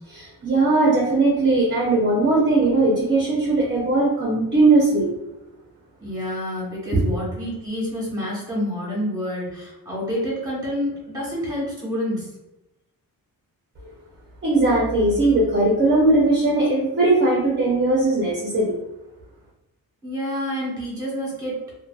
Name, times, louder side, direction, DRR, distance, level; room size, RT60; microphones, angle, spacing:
voice 1, 0.1-5.1 6.9-7.0 13.8-13.9 14.4-18.8, right 2 dB, 30° right, -4 dB, 0.6 m, -19 dB
voice 2, 6.0-12.3 20.0-21.6, equal, 10° right, -6 dB, 1.2 m, -28 dB
2.7 x 2.2 x 2.3 m, 0.94 s
wide cardioid pair, 120°, 37 cm